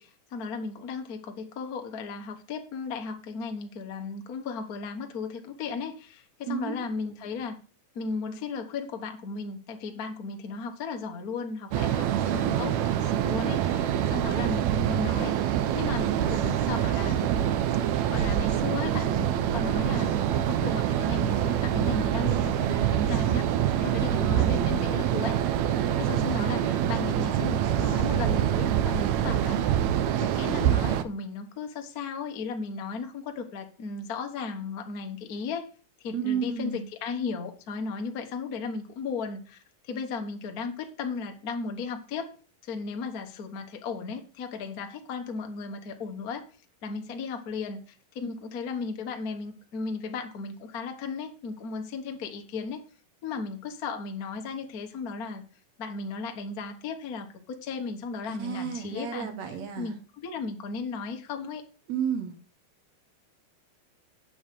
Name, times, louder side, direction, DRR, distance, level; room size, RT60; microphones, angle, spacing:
voice 1, 0.0-7.6 7.9-17.3 18.1-23.5 23.8-25.4 26.0-29.8 30.2-35.7 36.0-42.3 42.6-46.5 46.8-47.8 48.1-52.8 53.2-55.4 55.8-61.6, left 4 dB, 80° left, 4 dB, 0.8 m, -35 dB
sound 1, 11.7-31.0, right 10 dB, 80° right, 1.6 m, -25 dB
voice 2, 12.0-12.7 24.0-25.0 36.1-36.8 58.3-59.9 61.9-62.3, right 8 dB, 60° right, 7 dB, 2.2 m, -33 dB
8.5 x 7.9 x 5.3 m, 0.38 s
omnidirectional pair, 4.1 m